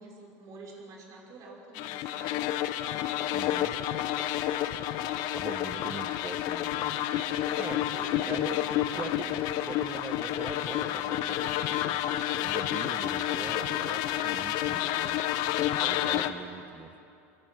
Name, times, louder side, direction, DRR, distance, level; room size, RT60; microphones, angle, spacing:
voice 1, 0.0-4.2 7.4-9.3, right 3 dB, 45° right, -2 dB, 5.7 m, -49 dB
sound 1, 1.8-16.3, left 12 dB, 55° left, 1.2 m, -30 dB
voice 2, 3.3-3.7 5.3-6.9 7.5-8.6 9.0-9.4 9.7-12.0 12.4-15.2 15.8-16.9, right 5 dB, 20° right, 11 dB, 1.3 m, -42 dB
24.0 x 23.0 x 9.4 m, 2.7 s
supercardioid pair, 125°, 8 cm